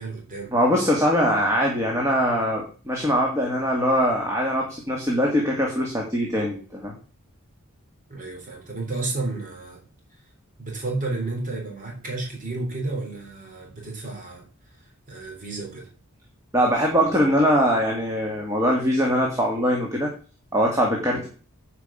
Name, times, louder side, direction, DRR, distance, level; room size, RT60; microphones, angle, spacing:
voice 1, 0.0-0.6 8.1-9.8 10.6-14.5 14.8-15.9, right 2 dB, 40° right, 3.7 m, -32 dB
voice 2, 0.5-6.9 16.5-20.1 20.5-21.3, equal, 15° right, 2.1 m, -22 dB
10.0 x 5.2 x 7.4 m
head